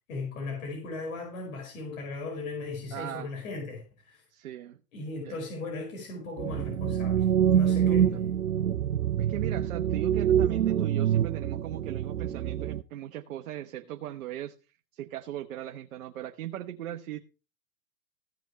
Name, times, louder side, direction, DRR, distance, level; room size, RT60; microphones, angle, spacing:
voice 1, 0.0-4.2 4.9-8.3, left 3 dB, 60° left, 5.0 m, -37 dB
voice 2, 2.9-3.3 4.3-4.8 5.1-5.4 7.9-8.0 9.2-14.5 14.9-17.2, right 12 dB, 60° right, 1.1 m, -38 dB
sound 1, 6.4-12.8, right 9 dB, 85° right, 0.9 m, -26 dB
15.5 x 6.2 x 4.7 m
hypercardioid pair, 115°, 46 cm